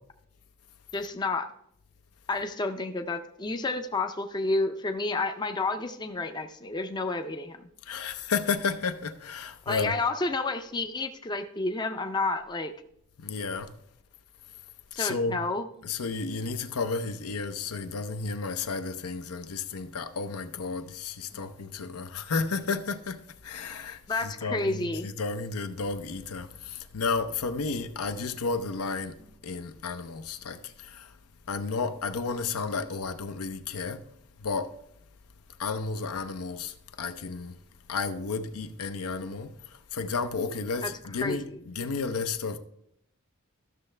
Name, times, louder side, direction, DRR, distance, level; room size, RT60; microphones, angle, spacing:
voice 1, 0.9-1.5 2.3-7.7 9.7-12.7 15.0-15.7 24.1-25.1 40.8-40.9 41.2-41.6, left 3 dB, 20° left, 0.5 m, -30 dB
voice 2, 7.8-9.9 13.2-13.7 15.0-15.4 15.8-29.2 29.4-31.1 31.5-34.0 34.4-34.7 35.6-37.6 37.9-42.6, left 4 dB, 80° left, 0.6 m, -32 dB
13.5 x 6.3 x 3.3 m
head